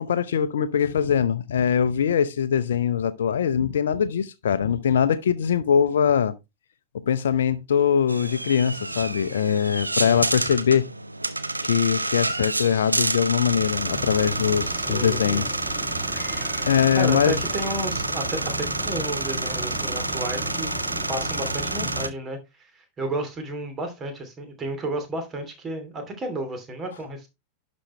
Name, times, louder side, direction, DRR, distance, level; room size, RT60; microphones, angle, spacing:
voice 1, 0.0-6.3 7.1-10.9 11.6-15.5 16.6-17.4, left 8 dB, 65° left, 0.7 m, -22 dB
sound 1, 8.1-22.1, right 2 dB, 85° right, 0.7 m, -29 dB
sound 2, 13.5-22.1, right 1 dB, 10° right, 2.1 m, -35 dB
voice 2, 14.7-15.4 16.9-20.7 21.1-22.4 22.7-27.3, right 1 dB, 25° right, 2.9 m, -32 dB
11.5 x 5.3 x 3.2 m
figure-of-eight pair, 90°, 0 cm